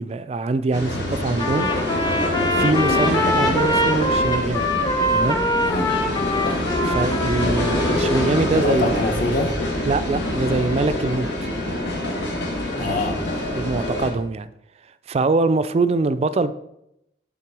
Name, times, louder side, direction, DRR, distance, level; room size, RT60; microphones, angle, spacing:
voice 1, 0.0-2.1 2.4-4.7 5.1-5.4 6.8-8.9 9.9-11.3 12.8-13.0 13.6-14.5 15.1-16.5, right 3 dB, 35° right, 13 dB, 0.3 m, -23 dB
sound 1, 0.7-14.1, left 1 dB, 85° left, 1.6 m, -25 dB
Trumpet, 1.4-8.3, left 1 dB, 25° left, 0.6 m, -23 dB
voice 2, 8.5-9.6 12.8-13.5, left 2 dB, 50° left, 3 dB, 1.0 m, -25 dB
5.9 x 4.0 x 6.0 m, 0.82 s
head